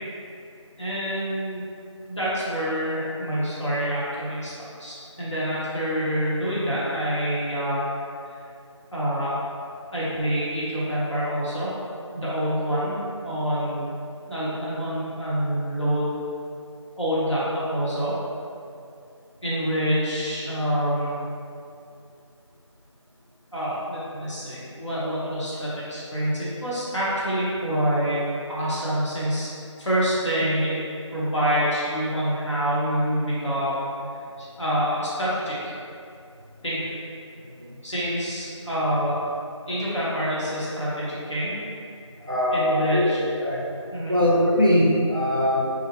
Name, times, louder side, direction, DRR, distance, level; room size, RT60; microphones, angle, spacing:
voice 1, 0.8-1.6 2.1-4.5 4.8-7.9 8.9-9.3 9.9-11.7 12.1-13.9 14.3-16.2 17.0-18.2 19.4-21.2 23.5-28.2 28.5-29.5 29.8-30.8 31.1-33.9 34.4-35.7 36.6-36.9 37.8-39.2 39.7-41.6 42.5-43.2 43.9-44.2, equal, 65° left, -9 dB, 0.8 m, -26 dB
voice 2, 42.3-43.1 43.4-43.6 44.1-45.6, left 1 dB, 45° right, -5 dB, 0.4 m, -21 dB
2.4 x 2.0 x 3.0 m, 2.5 s
figure-of-eight pair, 180°, 16 cm